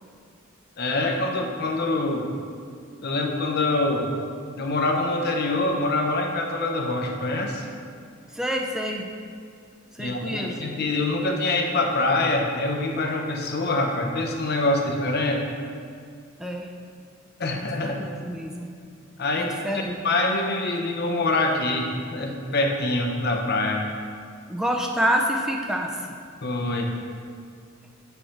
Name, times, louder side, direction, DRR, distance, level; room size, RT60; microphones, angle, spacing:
voice 1, 0.8-2.3 3.0-4.1 4.6-7.6 10.0-15.4 17.4-18.0 19.2-19.5 20.0-23.9 26.4-26.9, left 2 dB, 50° left, 2 dB, 0.7 m, -25 dB
voice 2, 8.3-9.1 9.9-10.7 16.4-16.7 17.5-18.7 19.4-19.9 24.5-26.0, equal, 5° right, 1 dB, 0.4 m, -27 dB
5.4 x 4.3 x 5.8 m, 2.2 s
head